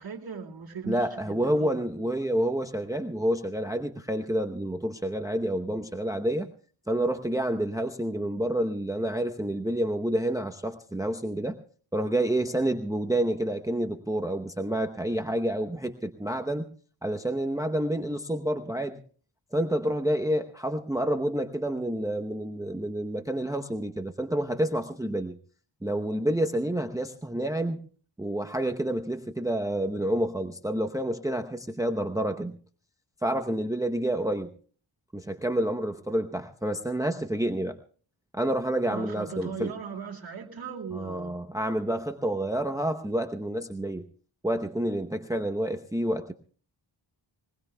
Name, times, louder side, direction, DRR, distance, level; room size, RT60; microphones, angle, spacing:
voice 1, 0.0-1.9 38.9-41.3, right 6 dB, 45° right, -2 dB, 2.4 m, -38 dB
voice 2, 0.9-6.5 6.9-11.6 11.9-16.7 17.0-19.0 19.5-25.4 25.8-27.8 28.2-32.5 33.2-34.5 35.1-37.8 38.3-39.7 40.9-44.1 44.4-46.3, right 1 dB, 5° right, 5 dB, 0.8 m, -29 dB
22.0 x 20.5 x 2.3 m, 0.43 s
wide cardioid pair, 85°, 48 cm